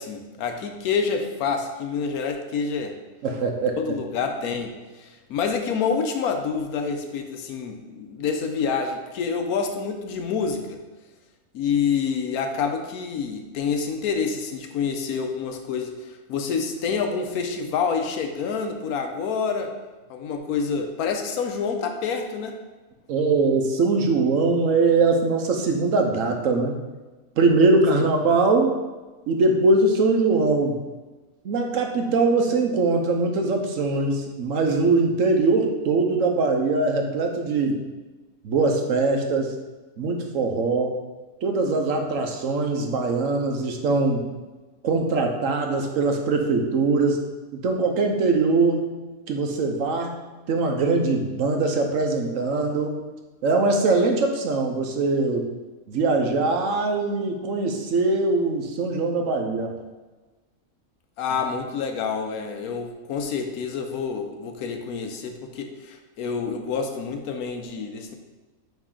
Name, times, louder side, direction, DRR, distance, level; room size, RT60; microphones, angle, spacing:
voice 1, 0.0-2.9 3.8-10.8 11.5-15.9 16.3-19.7 20.1-22.6 27.9-28.0 61.2-68.1, left 5 dB, 90° left, 5 dB, 1.2 m, -27 dB
voice 2, 3.2-3.8 23.1-26.7 27.4-28.7 29.3-30.8 31.4-37.8 38.4-39.5 40.0-40.9 41.4-44.3 44.8-47.2 47.5-48.8 49.3-50.1 50.5-53.0 53.4-55.5 55.9-59.7, right 3 dB, 65° right, 3 dB, 1.1 m, -22 dB
9.1 x 3.2 x 3.8 m, 1.2 s
omnidirectional pair, 1.5 m